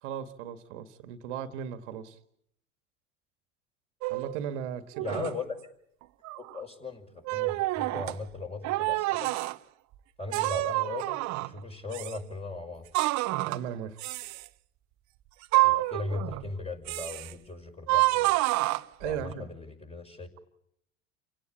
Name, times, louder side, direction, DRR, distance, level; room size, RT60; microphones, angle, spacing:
voice 1, 0.0-2.2 4.1-5.0 13.4-14.0 19.0-19.5, right 8 dB, 65° right, 9 dB, 1.9 m, -37 dB
sound 1, 4.0-4.4 4.9-5.4 6.0-6.6 7.2-8.2 8.6-9.6 10.3-11.6 11.9-12.2 12.9-13.7 14.0-14.5 15.4-16.5 16.9-17.3 17.9-19.3, right 21 dB, 45° right, 0.9 m, -28 dB
voice 2, 5.0-5.5 6.4-9.3 10.2-11.2 11.5-12.9 15.6-18.4 19.0-20.3, left 3 dB, 15° left, 4 dB, 5.8 m, -38 dB
29.5 x 17.5 x 8.7 m, 0.77 s
hypercardioid pair, 75°, 38 cm